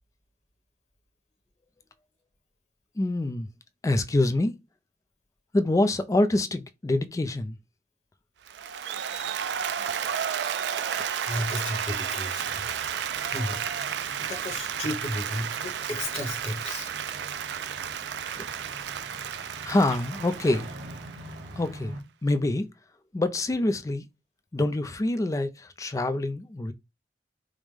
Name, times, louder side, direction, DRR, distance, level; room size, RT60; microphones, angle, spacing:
voice 1, 3.0-3.5 3.8-4.6 5.5-7.6 10.9-11.0 18.4-18.5 19.6-20.7 21.6-22.0 22.2-22.7 23.1-24.1 24.5-26.7, left 2 dB, 20° left, 0.3 m, -26 dB
Applause, 8.5-21.7, right 8 dB, 70° right, 0.4 m, -32 dB
voice 2, 11.2-12.7 13.2-13.6 13.9-16.9 19.2-20.0, left 1 dB, 40° left, 1.0 m, -34 dB
sound 1, 12.4-22.0, right 1 dB, 90° right, 1.7 m, -45 dB
5.0 x 2.1 x 3.2 m
head